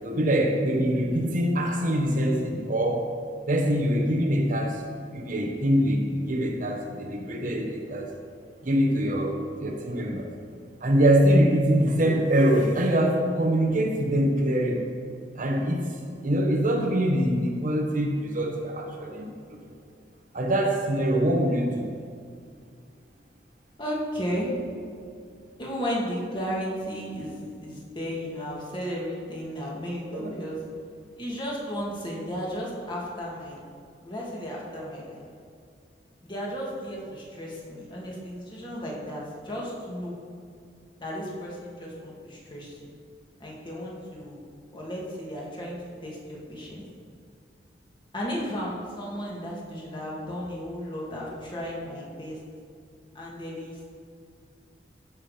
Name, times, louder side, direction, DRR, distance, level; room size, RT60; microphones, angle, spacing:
voice 1, 0.0-3.1 3.5-4.8 5.1-8.1 8.6-10.3 10.8-14.8 15.3-19.3 19.7-19.8 20.3-21.9 30.1-30.3, right 1 dB, 50° right, 2 dB, 1.1 m, -24 dB
voice 2, 23.8-24.6 25.6-30.6 31.2-33.6 34.0-35.2 36.2-40.2 41.0-42.9 43.4-44.4 44.7-46.9 48.1-52.4 53.1-53.9, equal, 30° left, -4 dB, 2.5 m, -34 dB
15.5 x 6.2 x 5.2 m, 2.3 s
head